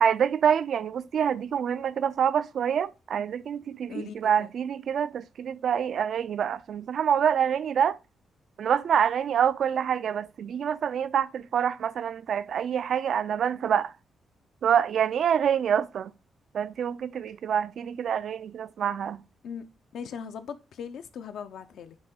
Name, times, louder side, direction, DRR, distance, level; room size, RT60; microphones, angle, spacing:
voice 1, 0.0-8.0 8.6-13.9 14.6-16.1 16.5-19.2, right 8 dB, 55° right, 0.3 m, -26 dB
voice 2, 3.9-4.5 19.4-19.7 19.9-22.0, left 7 dB, 70° left, 0.5 m, -39 dB
8.7 x 3.6 x 3.7 m
wide cardioid pair, 175°, 0 cm